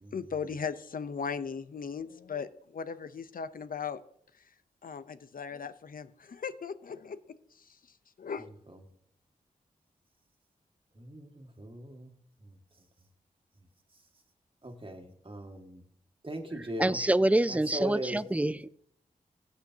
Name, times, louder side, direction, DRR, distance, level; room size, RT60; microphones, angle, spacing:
voice 1, 0.1-4.0 4.8-7.8 8.2-8.5, left 6 dB, 65° left, 13 dB, 0.8 m, -38 dB
voice 2, 11.0-12.1 12.4-12.6 14.6-15.8 16.2-17.0 17.5-18.2, equal, 35° right, 5 dB, 2.0 m, -39 dB
voice 3, 16.6-18.7, right 1 dB, 10° right, 18 dB, 0.5 m, -26 dB
16.5 x 8.5 x 2.9 m, 0.68 s
cardioid pair, 45°, 15 cm